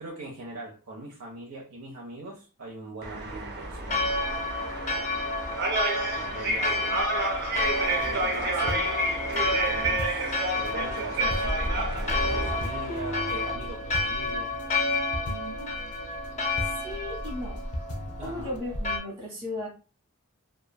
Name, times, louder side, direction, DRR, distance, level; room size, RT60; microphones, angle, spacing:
voice 1, 0.0-4.1 6.0-7.3 8.0-8.9 9.3-14.6 18.2-18.5, right 2 dB, 85° right, 0.7 m, -41 dB
sound 1, 3.0-12.4, right 2 dB, 50° right, 0.5 m, -30 dB
Church bell, 3.9-19.0, left 2 dB, 30° left, 0.5 m, -30 dB
sound 2, 8.0-18.6, equal, 80° left, 0.6 m, -38 dB
voice 2, 16.8-17.6 18.2-19.7, left 2 dB, 25° right, 0.9 m, -36 dB
3.0 x 2.3 x 2.2 m
head